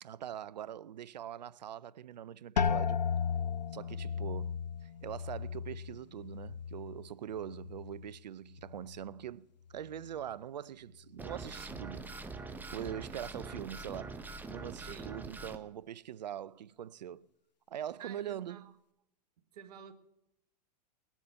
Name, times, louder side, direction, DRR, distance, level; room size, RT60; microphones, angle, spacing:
voice 1, 0.0-3.1 3.7-12.2 12.7-17.3 17.7-18.7, right 10 dB, 80° right, 0.5 m, -43 dB
sound 1, 2.6-8.2 8.5-9.2 9.8-10.2, left 6 dB, 90° left, 0.6 m, -36 dB
sound 2, 11.2-15.6, right 3 dB, 10° right, 0.8 m, -44 dB
voice 2, 14.9-15.2 18.0-18.7 19.5-19.9, right 8 dB, 65° right, 1.4 m, -50 dB
19.5 x 7.2 x 6.8 m
hypercardioid pair, 105°, 21 cm